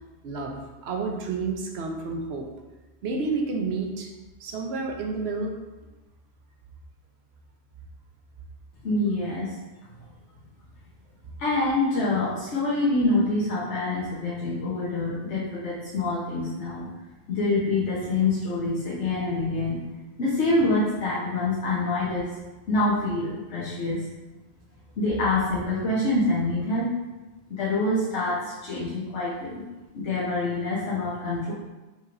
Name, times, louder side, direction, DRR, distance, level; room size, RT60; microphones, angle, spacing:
voice 1, 0.2-0.6 0.8-2.5 3.0-4.1 4.4-5.6, right 4 dB, 70° right, 2 dB, 0.9 m, -30 dB
voice 2, 8.8-9.5 11.4-16.9 17.3-19.8 20.2-22.4 22.7-24.1 25.0-26.9 27.5-29.6 29.9-31.5, left 2 dB, 85° left, -8 dB, 1.2 m, -26 dB
5.3 x 2.9 x 2.5 m, 1.1 s
omnidirectional pair, 1.2 m